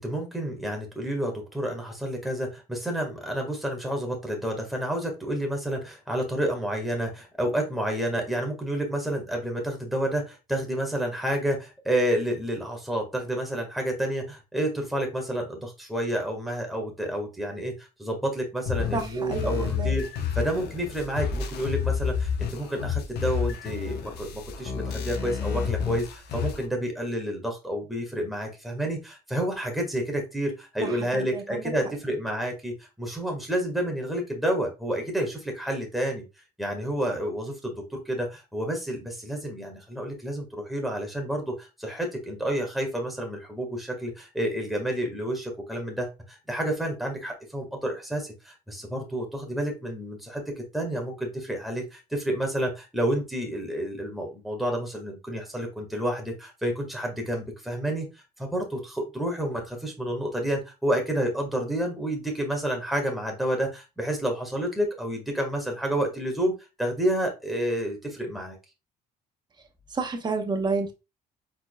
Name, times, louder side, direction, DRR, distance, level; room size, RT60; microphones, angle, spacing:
voice 1, 0.0-20.1 20.4-26.1 26.3-36.2 36.6-50.4 50.7-58.1 58.4-68.6, right 1 dB, ahead, 1 dB, 1.6 m, -29 dB
sound 1, 18.7-26.7, left 7 dB, 70° left, 0.9 m, -30 dB
voice 2, 18.9-19.9 30.8-31.7 69.9-70.9, right 4 dB, 25° right, 5 dB, 0.9 m, -30 dB
4.5 x 4.2 x 2.2 m, 0.27 s
cardioid pair, 110°, 17 cm